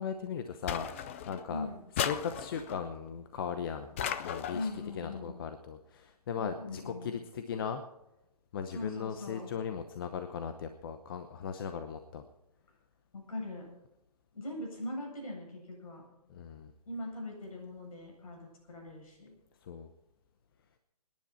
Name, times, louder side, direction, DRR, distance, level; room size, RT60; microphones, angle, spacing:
voice 1, 0.0-1.7 2.0-4.7 4.9-7.8 8.5-12.2 16.3-16.7 19.6-19.9, left 7 dB, 35° left, 8 dB, 0.9 m, -38 dB
sound 1, 0.7-1.5 2.0-2.8 4.0-4.8, left 9 dB, 20° left, 0.4 m, -36 dB
voice 2, 1.5-1.8 4.5-5.4 6.3-7.1 8.7-9.5 13.1-13.7 14.3-16.0 16.8-19.3, left 2 dB, 60° left, 0 dB, 7.9 m, -41 dB
24.5 x 10.5 x 4.4 m, 0.91 s
hypercardioid pair, 160°, 20 cm